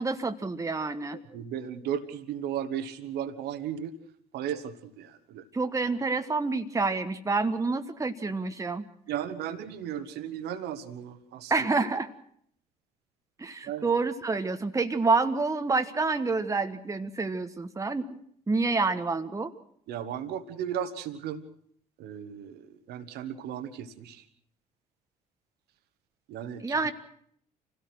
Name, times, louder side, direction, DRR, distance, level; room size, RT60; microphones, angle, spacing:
voice 1, 0.0-1.2 5.5-8.8 11.5-12.1 13.4-18.0 18.5-19.5 26.6-26.9, right 3 dB, 15° right, 8 dB, 1.4 m, -28 dB
voice 2, 1.3-3.9 4.3-5.4 9.1-11.5 13.6-13.9 19.9-21.4 22.0-24.2 26.3-26.8, right 9 dB, 55° right, 8 dB, 1.8 m, -35 dB
27.5 x 17.0 x 6.2 m, 0.65 s
figure-of-eight pair, 50°, 20 cm